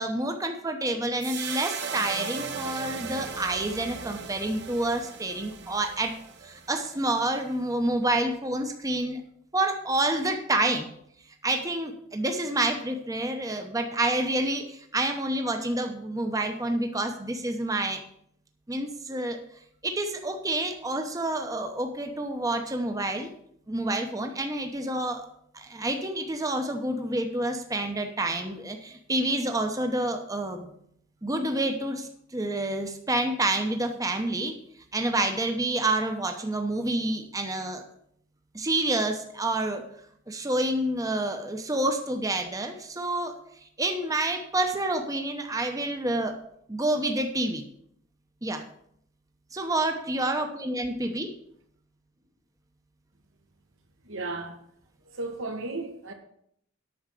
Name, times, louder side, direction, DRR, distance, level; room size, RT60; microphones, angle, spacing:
voice 1, 0.0-6.1 6.4-9.2 9.5-10.9 11.4-18.0 18.7-19.4 19.8-23.3 23.7-25.3 25.5-30.7 31.2-34.6 34.9-37.8 38.5-39.8 40.3-43.3 43.8-46.4 46.7-47.6 48.4-48.6 49.5-51.4, right 2 dB, 15° right, 0.9 m, -28 dB
sound 1, 1.2-7.6, right 6 dB, 60° right, 1.1 m, -37 dB
voice 2, 54.1-54.6 55.2-56.1, right 2 dB, 75° right, 1.7 m, -34 dB
8.6 x 6.3 x 7.5 m
head